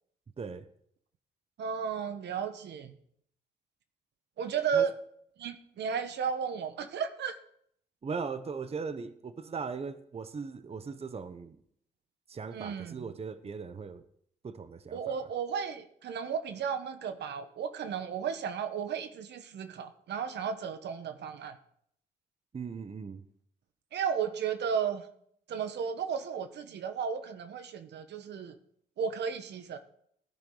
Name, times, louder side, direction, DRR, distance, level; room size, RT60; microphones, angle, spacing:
voice 1, 0.4-0.7 4.7-4.9 8.0-11.6 12.3-14.0 14.4-15.2 22.5-23.2, right 5 dB, 35° right, 0.9 m, -39 dB
voice 2, 1.6-3.0 4.4-4.9 5.4-7.4 12.5-13.1 14.9-21.6 23.9-25.1 25.5-28.6 29.0-29.8, right 7 dB, 70° right, 1.2 m, -34 dB
16.5 x 10.5 x 3.9 m
cardioid pair, 70°, 18 cm